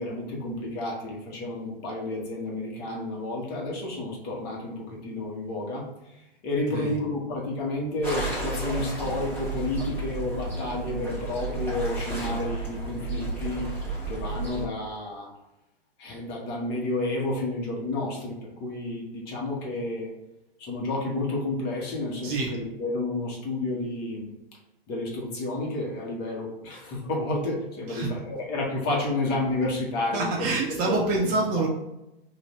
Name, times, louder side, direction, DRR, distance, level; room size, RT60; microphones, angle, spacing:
voice 1, 0.0-6.2 6.4-13.7 14.1-15.3 16.0-20.1 20.6-24.3 24.9-30.3 30.9-31.1, left 2 dB, 30° left, -2 dB, 1.2 m, -31 dB
sound 1, 8.0-14.6, right 3 dB, 5° left, 1.2 m, -32 dB
voice 2, 22.2-22.6 27.9-28.2 30.0-31.7, right 3 dB, 30° right, -1 dB, 0.6 m, -27 dB
3.8 x 2.6 x 3.1 m, 0.92 s
hypercardioid pair, 130°, 30 cm